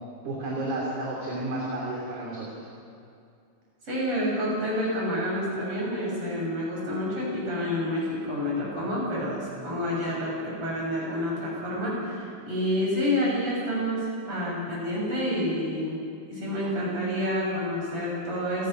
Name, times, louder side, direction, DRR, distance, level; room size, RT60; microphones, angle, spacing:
voice 1, 0.2-2.7, right 2 dB, 45° right, -3 dB, 4.0 m, -32 dB
voice 2, 3.8-16.0 16.3-18.7, left 1 dB, 30° right, -5 dB, 8.3 m, -28 dB
28.5 x 19.0 x 6.2 m, 2.5 s
omnidirectional pair, 5.2 m